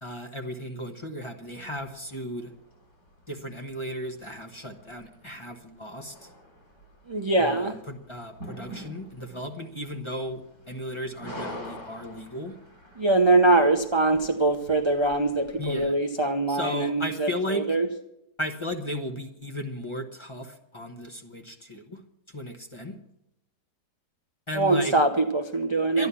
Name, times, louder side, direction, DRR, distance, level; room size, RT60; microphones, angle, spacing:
voice 1, 0.0-2.5 3.3-6.3 7.4-12.6 15.6-16.0 16.5-17.7 18.4-22.0 22.3-23.0 24.5-24.9 26.0-26.1, equal, 20° left, 4 dB, 1.0 m, -35 dB
sound 1, 1.4-15.9, equal, 60° left, 5.2 m, -47 dB
voice 2, 7.1-7.8 13.0-17.9 24.5-26.1, right 2 dB, 35° right, 4 dB, 0.4 m, -23 dB
12.5 x 10.5 x 7.0 m, 0.78 s
omnidirectional pair, 1.8 m